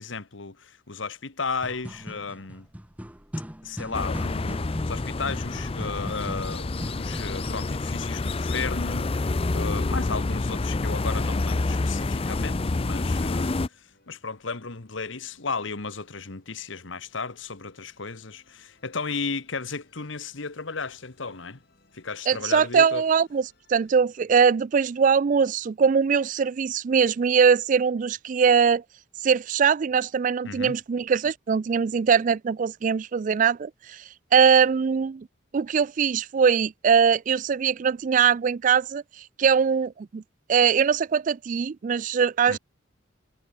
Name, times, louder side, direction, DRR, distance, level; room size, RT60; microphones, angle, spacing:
voice 1, 0.0-2.7 3.6-21.6 21.9-23.0 30.4-30.8 42.5-42.6, left 4 dB, 70° left, 1.4 m, -34 dB
sound 1, 1.6-7.7, equal, 5° right, 1.6 m, -39 dB
sound 2, 3.9-13.7, left 2 dB, 30° left, 0.5 m, -28 dB
Musical instrument, 11.2-24.0, left 2 dB, 55° left, 7.6 m, -65 dB
voice 2, 22.3-23.4 23.7-28.8 29.2-34.0 34.3-35.3 35.5-40.2 40.5-42.6, right 6 dB, 40° right, 0.3 m, -22 dB
head